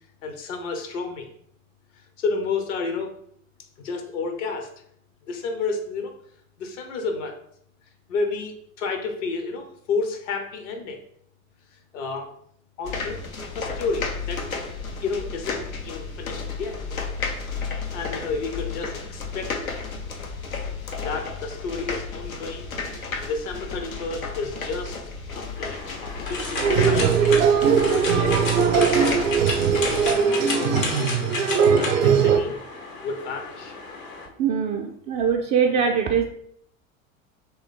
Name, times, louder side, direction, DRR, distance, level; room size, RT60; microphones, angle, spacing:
voice 1, 0.2-1.3 2.2-3.1 3.8-4.7 5.3-6.1 6.6-7.4 8.1-11.0 11.9-12.3 12.8-13.2 13.6-14.4 15.0-16.8 17.9-19.5 21.0-22.7 23.3-25.0 25.3-27.1 27.8-28.9 29.7-31.3 31.7-32.5 33.0-33.8, left 4 dB, 60° left, 5 dB, 0.8 m, -30 dB
sound 1, 12.8-30.1, left 4 dB, 90° left, 0.6 m, -33 dB
sound 2, 25.6-34.3, left 3 dB, 75° left, 1.1 m, -32 dB
sound 3, 26.6-32.4, right 7 dB, 70° right, 0.7 m, -20 dB
voice 2, 34.4-36.2, right 7 dB, 25° right, -1 dB, 0.3 m, -22 dB
3.0 x 3.0 x 3.9 m, 0.69 s
figure-of-eight pair, 75°, 41 cm